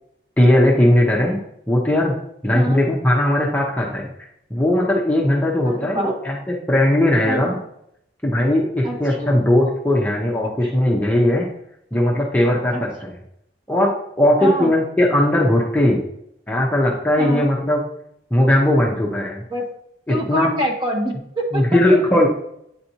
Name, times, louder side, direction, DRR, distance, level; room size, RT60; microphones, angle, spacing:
voice 1, 0.4-1.4 1.7-2.1 2.4-4.1 4.5-7.6 8.2-11.5 11.9-13.1 13.7-13.9 14.2-16.0 16.5-17.9 18.3-19.4 20.1-20.5 21.5-22.3, left 1 dB, 10° left, -2 dB, 0.7 m, -18 dB
voice 2, 5.6-6.1 7.3-7.5 8.8-9.4 10.6-10.7 12.7-12.8 14.4-14.7 17.2-17.5 19.5-19.6 20.1-22.3, equal, 25° right, 0 dB, 1.0 m, -26 dB
8.9 x 4.1 x 2.8 m, 0.75 s
head